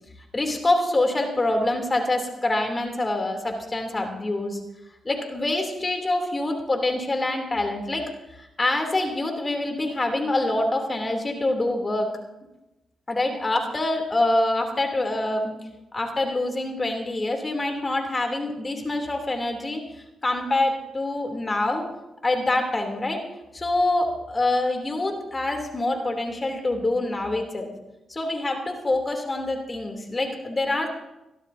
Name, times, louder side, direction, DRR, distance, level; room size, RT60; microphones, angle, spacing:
voice 1, 0.3-4.6 5.0-8.0 8.3-12.1 13.1-15.5 15.9-19.8 20.2-21.8 22.2-23.2 23.5-27.7 28.1-30.9, left 2 dB, 30° left, 3 dB, 3.1 m, -25 dB
24.5 x 12.5 x 2.8 m, 0.97 s
hypercardioid pair, 45°, 0 cm